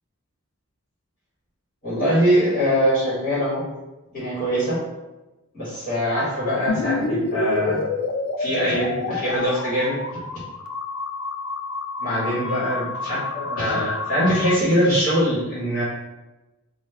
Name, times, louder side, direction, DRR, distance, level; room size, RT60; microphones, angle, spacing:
voice 1, 1.8-3.6 4.1-4.8 5.5-7.8 8.4-10.0 12.0-15.8, equal, 40° left, -10 dB, 1.5 m, -22 dB
sound 1, 6.7-14.6, left 3 dB, 85° left, 0.3 m, -29 dB
3.1 x 2.2 x 3.4 m, 1.1 s
head